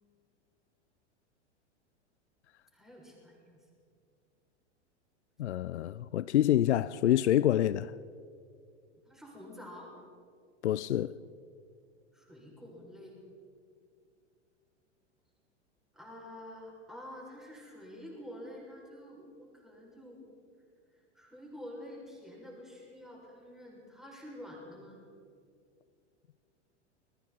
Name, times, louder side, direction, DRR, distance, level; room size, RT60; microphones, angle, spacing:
voice 1, 2.7-3.7 9.0-9.9 12.1-13.2 15.9-20.3 20.9-25.0, left 1 dB, ahead, 7.3 m, -48 dB
voice 2, 5.4-7.9 10.6-11.2, left 12 dB, 70° left, 0.6 m, -27 dB
30.0 x 21.5 x 4.6 m
figure-of-eight pair, 95°, 35 cm